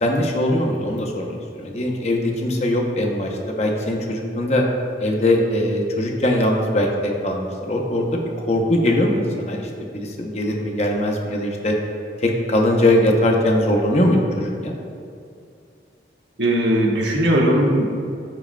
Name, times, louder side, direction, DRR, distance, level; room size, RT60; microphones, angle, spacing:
voice 1, 0.0-4.6 5.0-11.7 12.2-14.7, left 1 dB, 35° left, 1 dB, 0.8 m, -21 dB
voice 2, 16.4-17.9, right 1 dB, 80° right, -2 dB, 1.4 m, -18 dB
14.0 x 4.9 x 2.3 m, 2.4 s
head